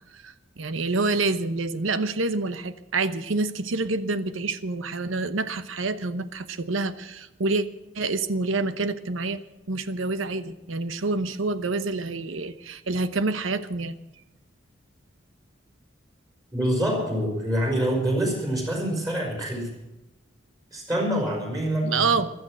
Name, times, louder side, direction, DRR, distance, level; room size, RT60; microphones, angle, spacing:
voice 1, 0.1-7.7 7.9-9.4 9.7-13.9 21.8-22.3, right 3 dB, 85° right, 12 dB, 0.9 m, -27 dB
voice 2, 16.5-19.7 20.7-22.1, right 1 dB, 15° right, 1 dB, 4.9 m, -26 dB
15.5 x 12.5 x 6.2 m, 0.96 s
head